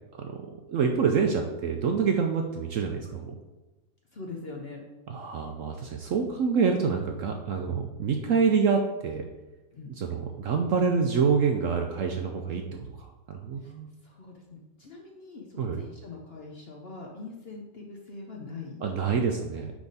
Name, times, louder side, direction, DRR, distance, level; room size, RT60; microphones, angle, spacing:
voice 1, 0.7-3.4 5.1-9.3 9.9-13.9 15.6-15.8 18.8-19.7, right 5 dB, 65° right, 3 dB, 0.8 m, -27 dB
voice 2, 4.1-4.8 9.7-9.9 13.6-13.7 14.0-18.8, left 3 dB, 50° left, 0 dB, 0.8 m, -42 dB
9.6 x 3.5 x 4.0 m, 1.1 s
omnidirectional pair, 1.8 m